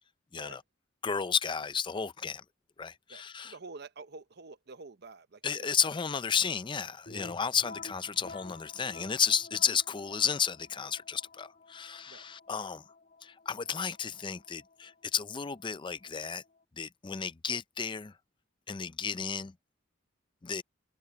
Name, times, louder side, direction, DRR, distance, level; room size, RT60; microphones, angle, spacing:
voice 1, 1.0-2.4 2.8-3.5 5.4-12.8 13.2-16.4 16.8-18.1 18.7-19.5 20.4-20.6, left 7 dB, 25° left, 0.5 m, -32 dB
voice 2, 3.1-5.9 7.1-7.3 12.1-12.2, right 3 dB, 55° right, 0.9 m, -49 dB
sound 1, 7.1-16.6, left 3 dB, 50° left, 1.7 m, -52 dB
open air
head